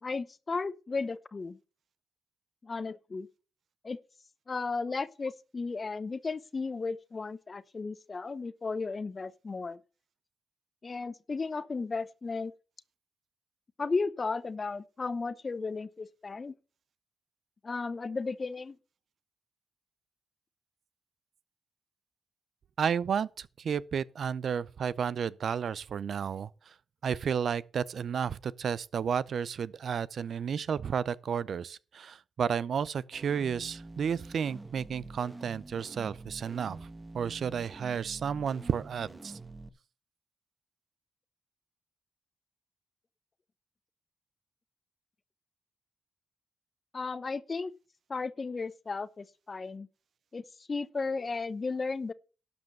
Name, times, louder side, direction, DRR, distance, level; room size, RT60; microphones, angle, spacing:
voice 1, 0.0-1.6 2.6-3.3 3.8-4.0 4.5-9.8 10.8-12.5 13.8-16.5 17.6-18.7 46.9-47.7 48.1-49.9 50.3-50.4 50.7-52.1, left 4 dB, 40° left, 0.8 m, -34 dB
voice 2, 22.8-26.7 27.0-36.9 37.1-39.4, right 7 dB, 65° right, 0.5 m, -32 dB
sound 1, 33.1-39.7, right 2 dB, 20° right, 1.2 m, -47 dB
12.0 x 5.3 x 6.7 m
cardioid pair, 65°, 0 cm